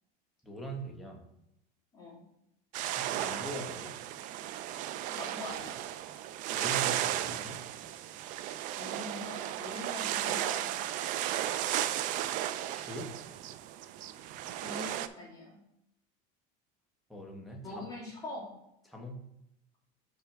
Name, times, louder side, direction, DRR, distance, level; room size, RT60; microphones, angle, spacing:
voice 1, 0.4-1.2 2.9-4.0 6.5-7.6 12.7-13.2 17.1-17.7 18.9-19.2, right 1 dB, ahead, -1 dB, 1.0 m, -42 dB
sound 1, 2.7-15.1, right 12 dB, 45° right, 0.4 m, -35 dB
voice 2, 5.1-5.8 8.8-10.7 14.5-15.6 17.6-18.4, left 2 dB, 20° left, -5 dB, 2.4 m, -43 dB
5.6 x 4.3 x 5.8 m, 0.81 s
cardioid pair, 160°, 19 cm